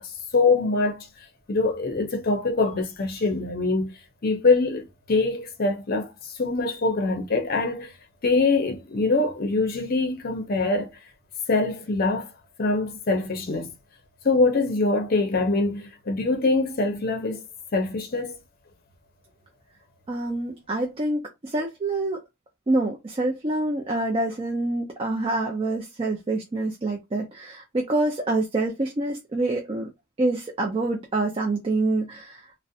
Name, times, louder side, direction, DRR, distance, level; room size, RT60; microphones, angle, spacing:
voice 1, 0.3-1.1 1.5-3.9 4.2-6.1 6.4-7.9 8.2-10.9 11.5-12.3 12.6-13.7 14.2-17.4 17.7-18.4, left 3 dB, 45° left, 0.6 m, -23 dB
voice 2, 20.1-22.2 22.7-29.9 30.2-32.4, right 2 dB, 25° right, 0.4 m, -26 dB
2.4 x 2.0 x 2.6 m
head